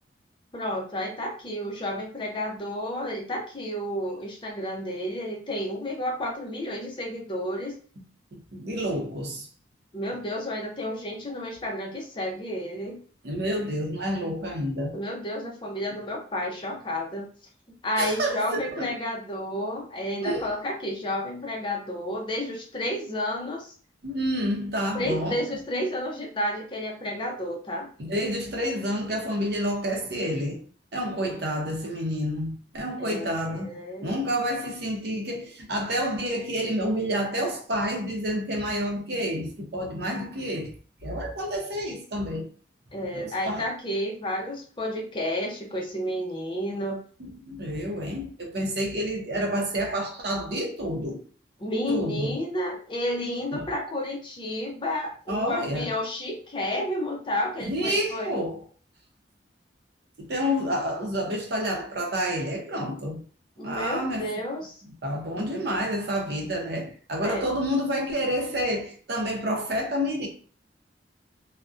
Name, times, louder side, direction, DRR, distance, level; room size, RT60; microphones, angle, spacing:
voice 1, 0.5-7.8 9.9-13.0 14.9-17.3 17.8-23.7 24.9-27.9 33.0-34.2 42.9-47.0 51.6-58.3 62.7-62.9 63.6-64.8 67.2-67.4, left 1 dB, 30° left, 0.5 m, -31 dB
voice 2, 8.3-9.5 13.2-15.0 18.0-19.0 20.2-20.5 24.0-25.4 28.0-30.6 30.9-33.7 34.0-40.7 41.0-42.5 43.1-43.7 47.2-51.2 51.9-52.4 53.5-53.7 55.3-55.9 57.6-58.6 60.2-63.2 63.6-64.3 65.0-70.3, equal, 60° right, 0.6 m, -29 dB
2.5 x 2.1 x 2.4 m
head